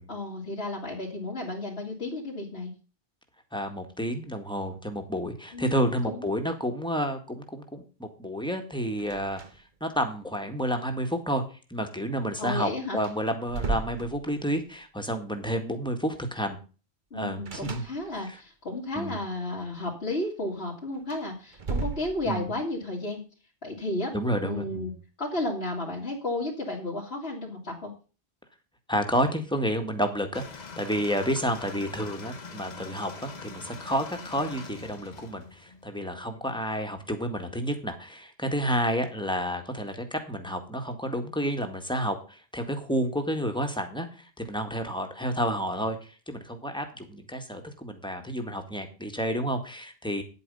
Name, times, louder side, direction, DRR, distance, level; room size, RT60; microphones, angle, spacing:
voice 1, 0.1-2.7 5.5-6.2 12.4-13.0 17.1-23.2 23.6-24.1 24.4-27.9, left 2 dB, 90° left, -5 dB, 2.5 m, -33 dB
voice 2, 3.5-9.4 9.8-11.4 11.7-16.6 17.1-17.8 19.0-19.2 22.3-22.5 24.1-24.9 28.9-50.2, equal, 5° left, 5 dB, 1.8 m, -30 dB
sound 1, 9.0-9.8 10.1-10.2 12.4-12.5 13.0-14.7 17.5-18.4 20.9-22.6, right 3 dB, 50° right, 1.3 m, -35 dB
sound 2, 30.3-36.0, left 4 dB, 45° left, 1.3 m, -43 dB
9.8 x 8.4 x 5.5 m, 0.36 s
omnidirectional pair, 1.0 m